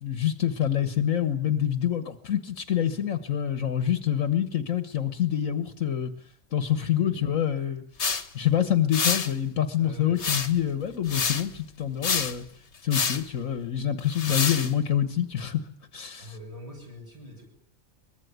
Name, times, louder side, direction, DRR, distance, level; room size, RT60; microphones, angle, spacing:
voice 1, 0.0-6.1 6.5-7.8 8.3-12.5 12.8-15.7 15.9-16.3, left 10 dB, 70° left, 10 dB, 1.6 m, -26 dB
voice 2, 6.8-7.2 9.8-10.2 16.2-17.4, left 1 dB, 25° right, 0 dB, 8.0 m, -44 dB
sound 1, 8.0-8.2 8.9-9.3 10.2-10.6 11.1-11.5 12.0-12.4 12.9-13.2 14.1-14.7, left 5 dB, 55° left, 1.7 m, -27 dB
23.0 x 21.0 x 9.4 m, 0.65 s
omnidirectional pair, 1.4 m